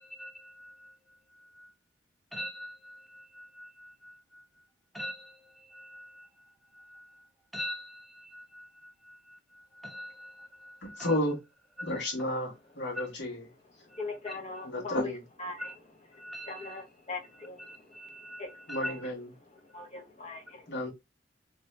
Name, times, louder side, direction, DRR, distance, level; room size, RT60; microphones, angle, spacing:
voice 1, 0.0-1.7 2.3-4.4 4.9-7.3 7.5-11.2 11.8-11.9 12.9-13.1 13.9-14.3 15.6-15.8 16.1-16.8 17.3-19.1, equal, ahead, 0.5 m, -44 dB
voice 2, 10.8-11.4 11.8-13.4 14.6-15.2 18.7-19.3 20.7-20.9, left 1 dB, 80° left, 1.4 m, -32 dB
voice 3, 14.0-15.1 15.4-15.6 16.5-17.7 18.4-18.5 18.8-19.0 19.7-20.6, left 3 dB, 35° left, 0.9 m, -40 dB
2.7 x 2.7 x 3.1 m
head